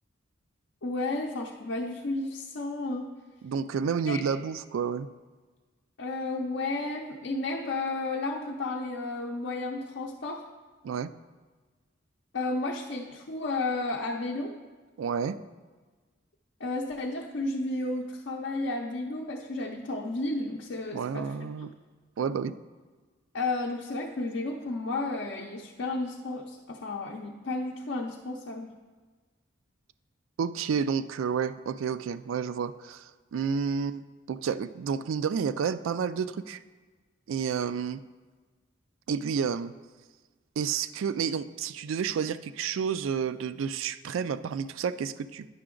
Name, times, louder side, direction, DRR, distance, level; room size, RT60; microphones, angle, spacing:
voice 1, 0.8-3.1 4.1-4.2 6.0-10.4 12.3-14.5 16.6-21.3 21.6-21.7 23.3-28.7, left 2 dB, 65° left, -1 dB, 0.6 m, -32 dB
voice 2, 3.4-5.1 10.8-11.1 15.0-15.4 20.9-21.7 22.2-22.5 30.4-36.6 37.3-38.0 39.1-39.7 40.6-45.5, right 6 dB, 80° right, 14 dB, 0.3 m, -30 dB
9.7 x 5.8 x 3.8 m, 1.3 s
head